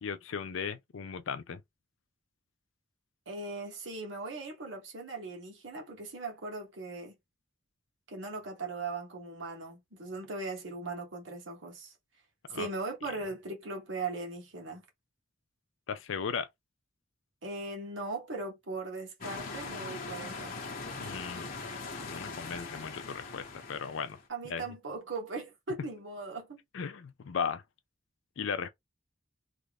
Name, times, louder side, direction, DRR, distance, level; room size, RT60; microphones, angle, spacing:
voice 1, 0.0-1.6 12.5-12.7 15.9-16.5 21.0-21.5 22.1-24.2 24.5-24.6 26.7-27.6 28.4-28.7, left 6 dB, 75° left, 0.4 m, -36 dB
voice 2, 3.3-7.2 8.1-11.9 12.5-14.8 17.4-20.5 24.3-26.6, right 3 dB, 70° right, 1.4 m, -39 dB
sound 1, 19.2-24.2, left 4 dB, 45° left, 1.0 m, -41 dB
3.3 x 2.4 x 3.4 m
head